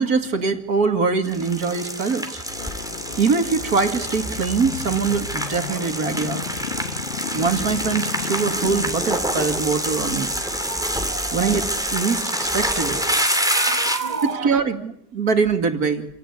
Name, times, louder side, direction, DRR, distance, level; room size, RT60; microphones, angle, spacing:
voice 1, 0.0-2.4 3.2-6.4 7.3-10.3 11.3-13.2 14.2-16.1, right 5 dB, 60° right, 2.7 m, -23 dB
sound 1, 1.2-14.2, equal, ahead, 2.8 m, -26 dB
sound 2, 2.5-9.4, left 6 dB, 45° left, 1.3 m, -34 dB
voice 2, 10.4-11.4 12.6-14.6, right 6 dB, 25° right, 1.2 m, -32 dB
27.5 x 17.5 x 9.8 m
omnidirectional pair, 1.8 m